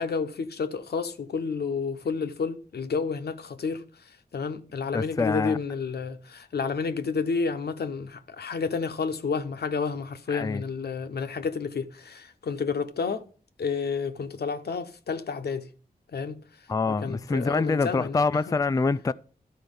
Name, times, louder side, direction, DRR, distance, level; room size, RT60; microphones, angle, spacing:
voice 1, 0.0-13.3 13.6-15.7 16.1-16.4 16.9-18.6, left 5 dB, 75° left, 0.9 m, -30 dB
voice 2, 4.9-5.6 10.3-10.6 16.7-19.1, left 4 dB, 20° left, 0.4 m, -25 dB
13.0 x 4.4 x 5.3 m
cardioid pair, 65°, 17 cm